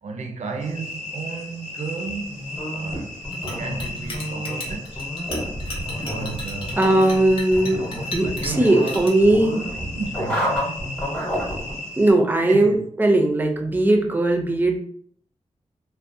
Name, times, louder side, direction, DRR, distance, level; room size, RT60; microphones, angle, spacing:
voice 1, 0.0-3.2 3.6-5.0 5.9-6.8 8.4-9.1 9.9-10.7 12.4-12.8, right 4 dB, 80° right, 0.4 m, -33 dB
sound 1, 0.6-12.1, left 2 dB, 90° left, 1.1 m, -36 dB
sound 2, 2.2-11.8, equal, 10° left, 0.8 m, -30 dB
Chink clink, 3.3-9.1, left 1 dB, 50° left, 0.8 m, -36 dB
voice 2, 6.8-7.8 8.1-9.7 12.0-14.8, right 1 dB, 15° right, 0.4 m, -19 dB
2.5 x 2.1 x 2.5 m
wide cardioid pair, 95°, 12 cm